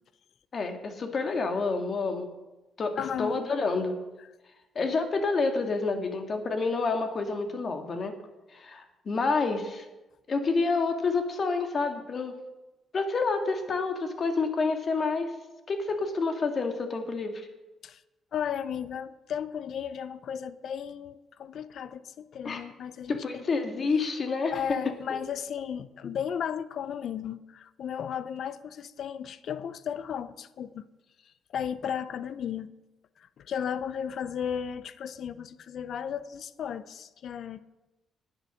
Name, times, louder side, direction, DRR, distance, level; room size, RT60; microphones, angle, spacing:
voice 1, 0.5-2.3 2.8-2.9 3.2-4.0 4.8-8.1 8.5-9.9 10.3-12.3 12.9-15.3 15.7-17.5 22.4-22.6 23.1-24.5, left 4 dB, 45° left, 1.9 m, -28 dB
voice 2, 3.0-3.4 17.8-18.0 18.3-23.4 24.5-30.9 31.5-32.7 33.2-37.6, left 8 dB, 65° left, 0.6 m, -35 dB
10.0 x 9.5 x 6.4 m
cardioid pair, 90°, 0 cm